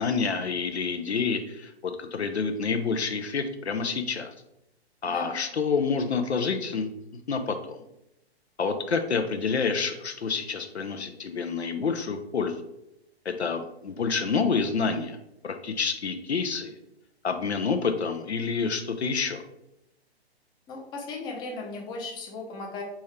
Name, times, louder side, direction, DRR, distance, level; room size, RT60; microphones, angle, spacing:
voice 1, 0.0-4.3 5.0-6.9 7.3-7.8 8.6-12.6 13.2-15.2 15.4-16.7 17.2-19.4, left 5 dB, 80° left, 7 dB, 0.6 m, -28 dB
voice 2, 5.1-5.4 20.7-22.8, left 3 dB, 15° left, 0 dB, 0.6 m, -36 dB
4.3 x 3.6 x 3.2 m, 0.84 s
figure-of-eight pair, 125°, 32 cm